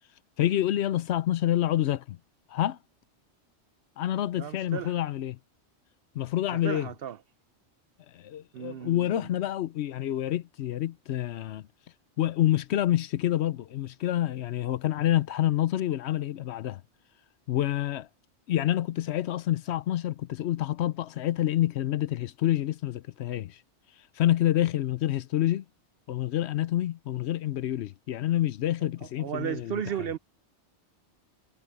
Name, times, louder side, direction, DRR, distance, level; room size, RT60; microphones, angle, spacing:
voice 1, 0.4-2.2 2.5-2.8 4.0-5.4 6.1-6.9 8.1-11.6 12.2-16.8 17.5-18.1 18.5-23.6 24.2-25.6 26.1-29.8, left 13 dB, 70° left, 0.9 m, -27 dB
voice 2, 4.3-4.9 6.5-7.2 8.5-9.3 29.2-30.2, right 10 dB, 65° right, 0.7 m, -34 dB
omnidirectional pair, 1.2 m